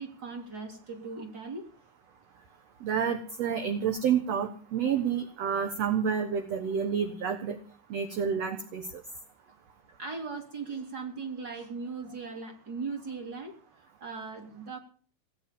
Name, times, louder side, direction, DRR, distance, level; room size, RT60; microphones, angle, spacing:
voice 1, 0.0-1.7 10.0-13.5 14.0-14.8, right 4 dB, 25° right, 5 dB, 3.3 m, -38 dB
voice 2, 2.8-7.6 7.9-8.9, right 7 dB, 60° right, 6 dB, 2.0 m, -29 dB
18.5 x 9.0 x 8.5 m, 0.43 s
omnidirectional pair, 4.4 m